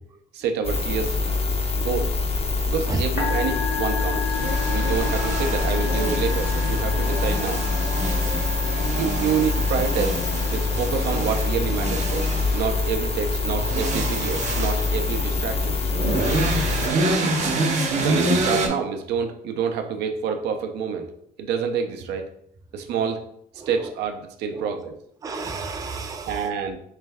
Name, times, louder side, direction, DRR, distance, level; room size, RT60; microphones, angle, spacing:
voice 1, 0.3-1.2 1.8-2.1 2.6-4.4 4.7-7.6 8.9-10.2 10.5-15.8 17.1-17.4 17.9-21.1 21.4-22.3 22.7-23.2 23.7-24.9 26.3-26.8, right 6 dB, 80° right, 5 dB, 0.6 m, -27 dB
sound 1, 0.6-16.9, left 3 dB, 35° left, 0.6 m, -25 dB
Musical instrument, 3.0-17.7, left 6 dB, 75° left, 1.5 m, -35 dB
sound 2, 4.3-18.7, right 2 dB, 45° right, 0.8 m, -28 dB
voice 2, 23.6-23.9 24.5-24.7 25.2-26.5, right 4 dB, 20° right, 5 dB, 0.4 m, -31 dB
3.2 x 3.2 x 3.4 m, 0.70 s
cardioid pair, 110°, 17 cm